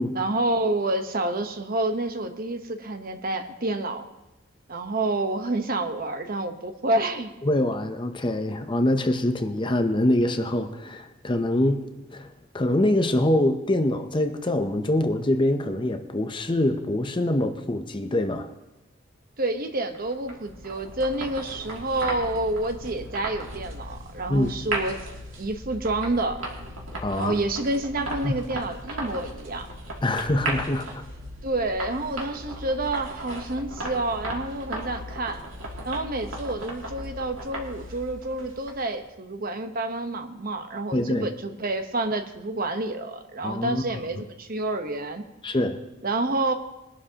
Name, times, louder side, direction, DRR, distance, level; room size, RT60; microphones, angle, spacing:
voice 1, 0.1-4.0 4.7-7.3 19.4-25.0 25.4-26.4 27.2-29.7 31.4-35.4 35.8-45.2 46.0-46.5, right 2 dB, 45° right, 7 dB, 1.0 m, -28 dB
voice 2, 7.4-12.3 12.5-18.5 24.3-24.5 27.0-27.3 28.2-28.3 30.0-31.0 40.9-41.3 43.4-44.0 45.4-45.8, left 1 dB, 25° left, 7 dB, 0.6 m, -24 dB
sound 1, 19.9-39.0, right 1 dB, 80° right, 2.6 m, -36 dB
22.0 x 11.5 x 2.9 m, 0.99 s
head